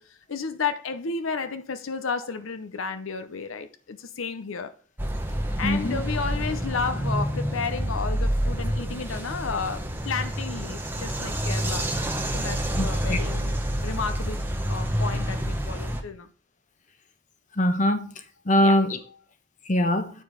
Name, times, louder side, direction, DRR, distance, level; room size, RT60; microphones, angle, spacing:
voice 1, 0.0-4.7 5.6-11.9 12.3-13.5 13.8-16.3 18.6-18.8, left 5 dB, 80° left, 0.7 m, -32 dB
sound 1, 5.0-16.0, equal, 10° right, 0.9 m, -28 dB
voice 2, 5.6-6.0 12.8-13.2 17.6-18.1 18.5-19.0 19.7-20.1, left 1 dB, 35° left, 1.0 m, -22 dB
9.1 x 4.6 x 4.9 m
head